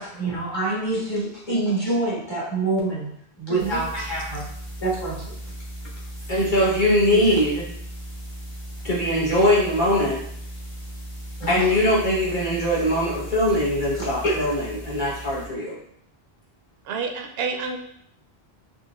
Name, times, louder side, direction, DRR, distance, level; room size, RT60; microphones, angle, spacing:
voice 1, 0.0-3.1 3.4-4.5 4.8-5.4 7.1-7.4 11.4-11.7 14.2-14.3, right 2 dB, 25° left, -7 dB, 1.3 m, -26 dB
voice 2, 3.5-3.8 16.8-17.8, right 5 dB, 75° right, 4 dB, 0.8 m, -29 dB
sound 1, 3.6-15.5, equal, 70° left, 1.3 m, -37 dB
voice 3, 6.3-7.7 8.8-10.2 11.5-15.8, left 1 dB, 50° left, -8 dB, 1.2 m, -21 dB
4.4 x 2.8 x 2.4 m, 0.69 s
omnidirectional pair, 1.1 m